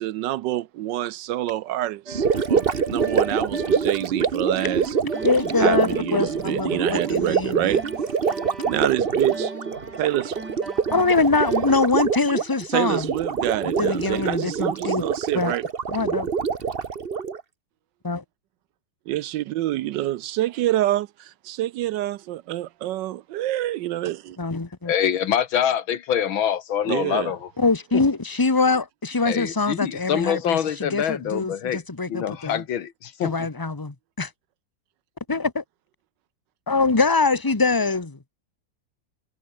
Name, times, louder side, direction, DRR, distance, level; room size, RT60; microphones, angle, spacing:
voice 1, 0.0-5.0 5.6-7.8 8.7-9.5 10.0-10.4 12.7-15.6 19.1-24.4 26.9-27.3, right 14 dB, 75° right, 1.2 m, -27 dB
Gurgling, 2.1-17.4, right 6 dB, 35° right, 1.2 m, -25 dB
sound 1, 2.1-11.9, right 3 dB, 55° right, 6.0 m, -38 dB
voice 2, 5.2-7.7 10.9-13.1 13.6-15.0 15.3-15.5 15.9-16.3 18.0-18.2 24.4-24.9 27.6-32.6 33.2-34.3 35.3-35.6 36.7-38.2, left 3 dB, 15° left, 1.0 m, -23 dB
voice 3, 24.9-27.5 27.9-28.0 29.3-31.8 32.1-33.5, left 9 dB, 90° left, 2.2 m, -25 dB
omnidirectional pair, 2.1 m